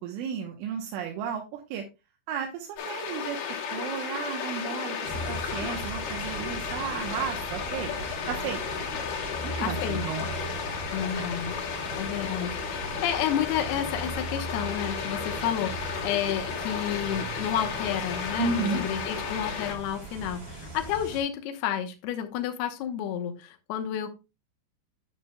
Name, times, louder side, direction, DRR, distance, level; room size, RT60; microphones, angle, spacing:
voice 1, 0.0-1.8 2.3-3.4 3.7-7.9 8.3-8.6 9.4-10.2 11.2-11.5 18.4-18.8, right 6 dB, 85° right, 2 dB, 3.4 m, -33 dB
sound 1, 2.8-19.7, left 7 dB, 60° left, 3.7 m, -34 dB
sound 2, 5.0-21.2, right 2 dB, 30° right, 3.1 m, -39 dB
sound 3, 7.6-17.3, right 5 dB, 65° right, 3.4 m, -49 dB
voice 2, 9.6-10.3 10.9-11.6 12.0-24.1, left 10 dB, 75° left, 7 dB, 2.6 m, -31 dB
9.2 x 8.6 x 2.2 m, 0.26 s
omnidirectional pair, 5.5 m